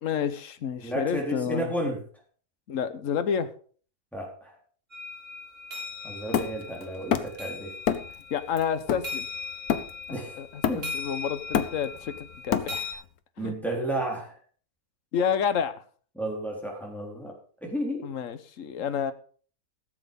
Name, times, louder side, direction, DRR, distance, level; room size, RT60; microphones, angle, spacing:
voice 1, 0.0-1.7 2.7-3.5 8.3-9.3 10.3-13.0 13.4-13.5 15.1-15.8 18.0-19.1, left 7 dB, 60° left, 11 dB, 1.3 m, -29 dB
voice 2, 0.8-2.0 4.1-4.5 6.0-7.7 10.1-10.4 10.7-10.9 13.4-14.4 16.2-17.3 17.6-18.1, right 1 dB, ahead, -1 dB, 3.9 m, -32 dB
sound 1, 4.9-12.9, left 4 dB, 40° right, 4.1 m, -39 dB
Hammer, 6.3-7.5 7.9-8.2 8.6-10.2 10.6-11.1 11.4-13.0, left 8 dB, 75° left, 1.5 m, -28 dB
16.0 x 7.8 x 5.3 m, 0.44 s
omnidirectional pair, 1.6 m